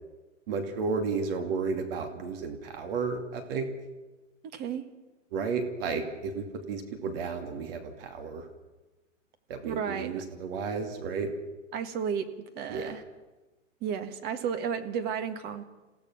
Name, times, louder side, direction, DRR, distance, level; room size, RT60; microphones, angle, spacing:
voice 1, 0.5-3.7 5.3-8.5 9.5-11.3 12.7-12.9, right 5 dB, 45° right, 5 dB, 2.7 m, -32 dB
voice 2, 4.4-4.9 9.6-10.2 11.7-12.3 12.5-13.0 13.8-15.7, right 7 dB, 25° right, 8 dB, 1.6 m, -33 dB
28.0 x 16.0 x 6.3 m, 1.1 s
hypercardioid pair, 135°, 39 cm